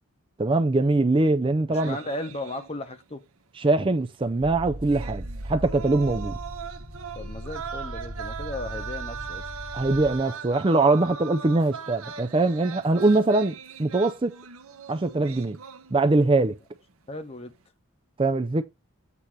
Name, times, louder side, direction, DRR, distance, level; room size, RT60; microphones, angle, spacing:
voice 1, 0.4-2.0 3.6-6.4 9.7-14.3 14.9-15.6 15.9-16.5 18.2-18.6, right 2 dB, 25° right, 0.4 m, -22 dB
voice 2, 1.7-3.2 7.2-9.5 17.1-17.5, left 1 dB, 25° left, 0.9 m, -36 dB
sound 1, 1.7-3.1 3.4-3.5 4.8-16.3 16.6-16.9, right 7 dB, 75° right, 0.9 m, -40 dB
sound 2, 4.4-10.2, equal, 50° right, 1.5 m, -38 dB
8.4 x 2.8 x 5.9 m
head